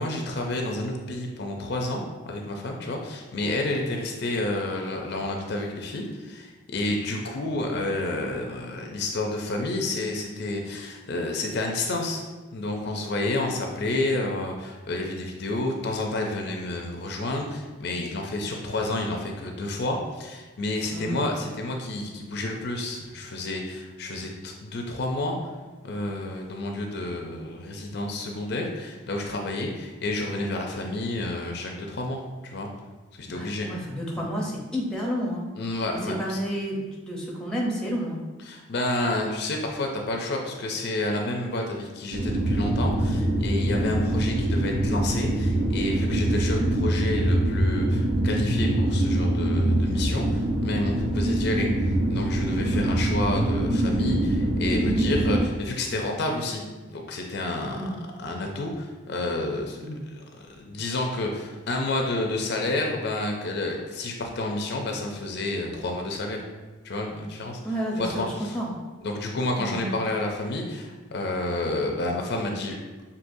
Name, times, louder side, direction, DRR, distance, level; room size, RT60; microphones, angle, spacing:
voice 1, 0.0-12.2 12.5-25.5 25.8-32.7 33.2-33.7 35.6-36.4 38.4-56.6 56.9-57.9 58.2-59.8 60.1-66.4 66.8-67.6 68.0-68.6 69.0-72.7, left 2 dB, 55° left, 1 dB, 0.5 m, -30 dB
voice 2, 20.9-21.3 33.3-35.5 35.9-38.2 52.7-53.0 57.7-57.9 59.8-60.0 67.6-68.7 69.6-69.9, equal, 5° left, -3 dB, 0.7 m, -31 dB
sound 1, 42.1-55.5, right 1 dB, 55° right, 0.5 m, -24 dB
6.0 x 2.8 x 2.6 m, 1.3 s
head